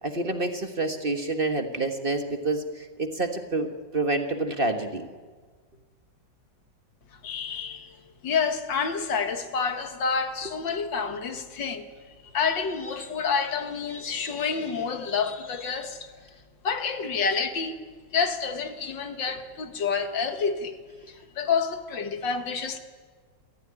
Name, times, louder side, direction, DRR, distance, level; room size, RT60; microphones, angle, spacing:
voice 1, 0.0-5.1, right 2 dB, 35° right, 6 dB, 1.3 m, -28 dB
voice 2, 7.1-16.4 16.6-17.8 18.1-20.8 21.1-22.8, left 5 dB, 80° left, 7 dB, 2.2 m, -29 dB
23.0 x 15.5 x 9.8 m, 1.5 s
omnidirectional pair, 2.0 m